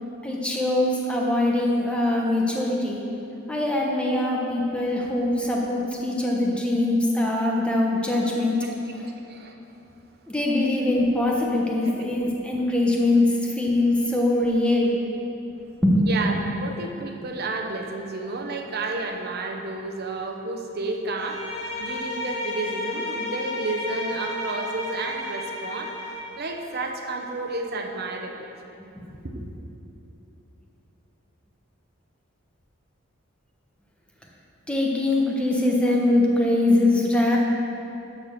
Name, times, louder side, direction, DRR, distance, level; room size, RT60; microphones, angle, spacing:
voice 1, 0.2-3.0 3.5-8.6 10.3-15.0 15.8-16.1 29.0-29.1 34.7-37.4, left 1 dB, 5° left, -2 dB, 1.1 m, -22 dB
voice 2, 8.6-9.0 9.3-9.6 11.8-11.9 14.7-14.8 15.1-15.3 16.0-28.5 29.1-29.4, right 2 dB, 55° right, 2 dB, 0.9 m, -31 dB
Bowed string instrument, 21.2-26.4, left 1 dB, 30° left, 1.7 m, -32 dB
12.0 x 4.3 x 6.5 m, 2.9 s
head